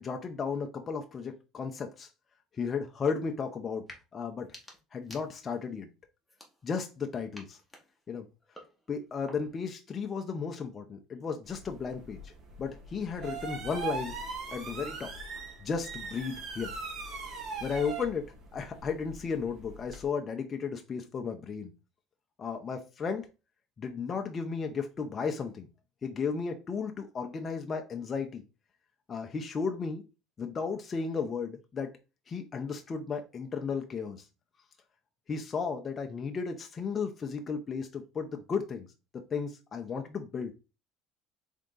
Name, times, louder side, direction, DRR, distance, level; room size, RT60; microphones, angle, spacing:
voice 1, 0.0-2.1 2.5-3.8 4.1-4.5 4.9-5.9 6.6-7.6 8.1-8.3 8.9-12.3 12.6-14.1 14.5-15.1 15.6-16.7 17.6-21.7 22.4-23.3 23.8-25.7 26.0-28.4 29.1-30.0 30.4-31.9 32.3-34.2 35.3-38.9 39.3-40.5, left 5 dB, 30° left, 0.7 m, -34 dB
sound 1, 3.7-4.0 4.4-5.7 6.3-6.9 7.3-9.7, left 1 dB, 5° left, 1.4 m, -53 dB
sound 2, 11.5-20.0, right 4 dB, 55° right, 1.7 m, -41 dB
3.8 x 3.6 x 3.8 m
supercardioid pair, 115°, 0 cm